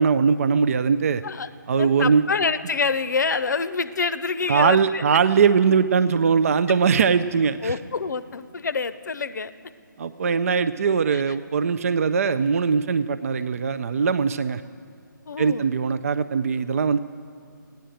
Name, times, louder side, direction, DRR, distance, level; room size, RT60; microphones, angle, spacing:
voice 1, 0.0-1.2 1.7-2.2 4.5-7.8 10.0-14.6 15.4-17.0, right 6 dB, 45° right, 12 dB, 0.4 m, -21 dB
voice 2, 1.8-5.0 7.6-9.5 11.1-11.2 15.3-15.7, left 5 dB, 55° left, 15 dB, 0.6 m, -26 dB
15.5 x 10.5 x 7.8 m, 2.2 s
figure-of-eight pair, 145°, 11 cm